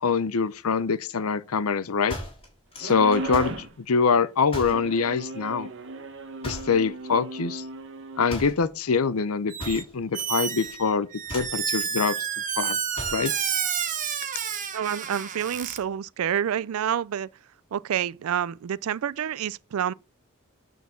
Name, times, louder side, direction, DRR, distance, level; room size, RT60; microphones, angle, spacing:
voice 1, 0.0-2.2 2.8-5.7 6.4-7.6 8.2-12.3 12.6-12.8 13.1-13.3, left 5 dB, 85° left, 0.7 m, -24 dB
sound 1, 2.1-3.7 4.5-4.9 6.4-6.9 8.3-8.7 9.6-10.4 10.6-10.9 11.3-11.6 12.9-13.3, left 1 dB, 25° left, 3.6 m, -37 dB
sound 2, 2.8-3.7 4.6-8.3, right 2 dB, 60° right, 1.0 m, -36 dB
Squeak, 9.5-9.8 10.1-15.8, right 8 dB, 35° right, 1.0 m, -30 dB
voice 2, 14.7-17.3 17.7-19.9, right 9 dB, 75° right, 0.4 m, -28 dB
9.3 x 4.0 x 7.1 m
head